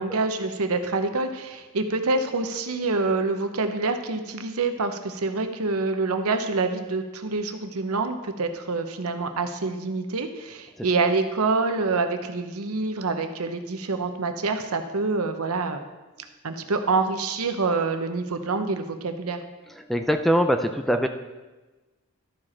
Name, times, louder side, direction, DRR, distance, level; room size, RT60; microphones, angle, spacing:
voice 1, 0.0-15.8 16.4-19.4, right 3 dB, 80° right, 7 dB, 0.8 m, -26 dB
voice 2, 19.9-21.1, equal, ahead, 6 dB, 0.3 m, -22 dB
12.5 x 4.9 x 4.3 m, 1.2 s
head